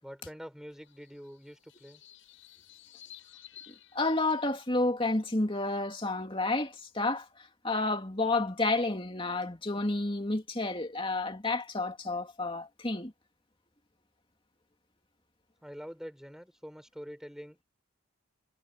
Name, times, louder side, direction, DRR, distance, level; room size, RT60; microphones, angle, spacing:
voice 1, 0.0-2.0 15.6-17.6, equal, ahead, 7.2 m, -45 dB
sound 1, 0.7-4.7, left 10 dB, 70° left, 7.6 m, -55 dB
voice 2, 3.7-7.3 7.6-13.1, left 2 dB, 25° left, 2.6 m, -30 dB
head